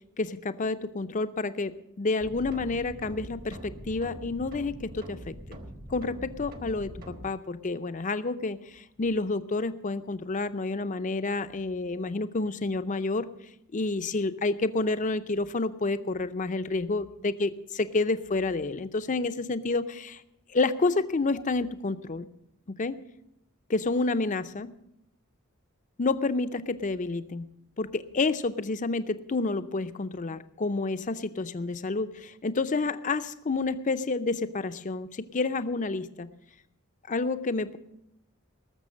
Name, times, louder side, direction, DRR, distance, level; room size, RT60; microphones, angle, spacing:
voice 1, 0.2-5.6 5.9-13.3 13.7-20.2 20.5-22.3 22.7-23.0 23.7-24.7 26.0-27.5 27.8-36.3 37.1-37.8, left 3 dB, 35° left, 11 dB, 0.6 m, -29 dB
sound 1, 2.2-7.3, equal, 45° right, 1.3 m, -43 dB
19.0 x 6.9 x 6.4 m, 0.83 s
head